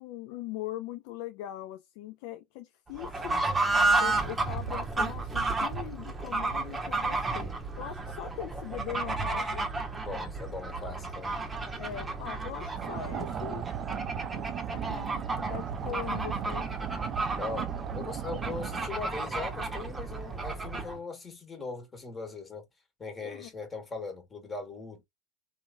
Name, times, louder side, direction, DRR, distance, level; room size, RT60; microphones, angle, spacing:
voice 1, 0.0-3.4 4.0-9.6 11.8-13.7 14.0-16.7 23.2-23.5, left 13 dB, 65° left, 0.3 m, -41 dB
Fowl / Bird, 2.9-21.0, right 3 dB, 15° right, 0.9 m, -32 dB
voice 2, 10.0-11.4 17.3-17.7 17.9-22.7 23.0-25.1, left 3 dB, 25° left, 1.4 m, -40 dB
sound 1, 12.8-18.9, right 10 dB, 45° right, 0.3 m, -38 dB
2.9 x 2.5 x 2.4 m
hypercardioid pair, 85°, 0 cm